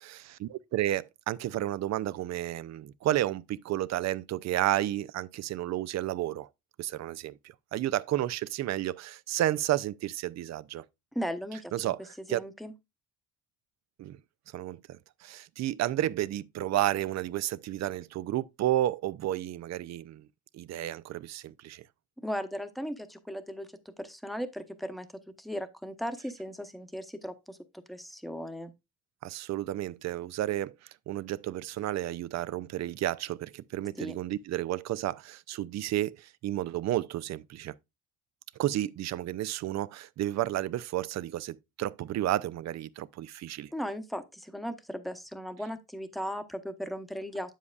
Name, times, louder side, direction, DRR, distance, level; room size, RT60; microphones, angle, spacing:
voice 1, 0.0-6.5 6.8-7.4 7.7-10.9 11.7-12.0 12.3-12.4 14.0-14.2 14.5-20.3 20.5-21.8 29.2-30.8 31.1-37.7 38.6-43.7, right 13 dB, 60° right, 0.5 m, -31 dB
voice 2, 11.1-11.9 12.3-12.7 22.2-25.1 25.4-27.6 27.9-28.7 34.0-34.1 43.7-47.5, equal, ahead, 0.9 m, -37 dB
8.3 x 7.4 x 2.4 m
cardioid pair, 90°, 30 cm